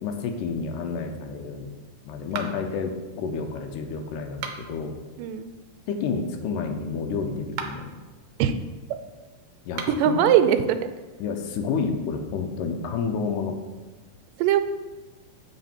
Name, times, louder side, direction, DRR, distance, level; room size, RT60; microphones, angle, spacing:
voice 1, 0.0-1.7 2.1-5.0 5.9-8.0 9.7-10.3 11.2-13.6, left 5 dB, 90° left, 5 dB, 2.3 m, -30 dB
sound 1, 2.3-2.8 4.3-4.9 7.4-7.9 9.7-10.1, right 6 dB, 75° right, 1.9 m, -36 dB
voice 2, 5.2-5.5 8.4-8.6 9.9-10.8 14.4-14.6, right 9 dB, 90° right, 10 dB, 2.2 m, -20 dB
7.5 x 6.7 x 4.3 m, 1.3 s
omnidirectional pair, 3.8 m